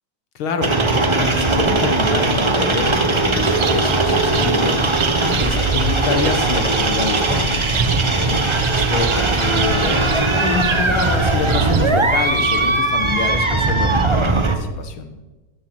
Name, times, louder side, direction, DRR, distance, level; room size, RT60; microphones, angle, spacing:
voice 1, 0.4-4.9 5.2-7.9 8.7-15.1, left 5 dB, 85° left, 7 dB, 2.2 m, -26 dB
sound 1, 0.6-14.6, right 3 dB, 25° right, 0.6 m, -19 dB
sound 2, 3.4-13.8, right 10 dB, 80° right, 1.6 m, -31 dB
11.0 x 9.2 x 7.7 m, 1.1 s
omnidirectional pair, 2.2 m